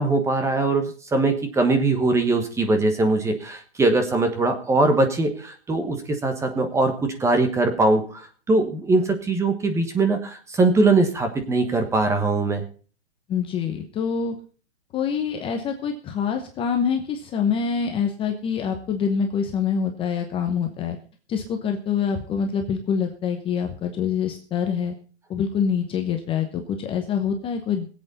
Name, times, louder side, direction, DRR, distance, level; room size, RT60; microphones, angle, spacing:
voice 1, 0.0-12.6, right 2 dB, 10° right, 6 dB, 1.2 m, -21 dB
voice 2, 13.3-14.3 14.9-21.0 21.3-24.9 25.3-27.9, left 7 dB, 15° left, 4 dB, 1.0 m, -25 dB
21.0 x 8.1 x 4.2 m, 0.39 s
hypercardioid pair, 150°, 35 cm